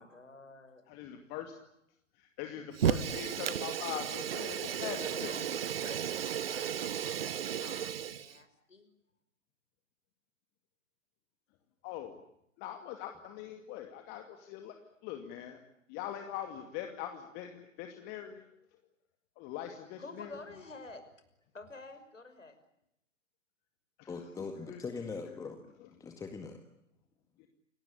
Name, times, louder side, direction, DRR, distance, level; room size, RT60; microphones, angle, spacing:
voice 1, 0.0-0.8 4.5-8.9 20.0-21.0 21.5-22.6, left 3 dB, 75° left, 9 dB, 6.2 m, -49 dB
voice 2, 0.9-1.5 2.2-5.3 11.8-12.2 12.6-14.8 15.0-15.6 15.9-18.5 19.4-20.3 24.0-24.1 24.7-24.8 27.4-27.5, left 11 dB, 25° left, 5 dB, 2.4 m, -42 dB
Fire, 2.7-8.4, right 9 dB, 50° right, 1.4 m, -34 dB
voice 3, 24.1-25.6 26.0-26.6, left 4 dB, 10° left, 5 dB, 1.9 m, -41 dB
29.5 x 19.5 x 10.0 m, 0.79 s
figure-of-eight pair, 120°, 38 cm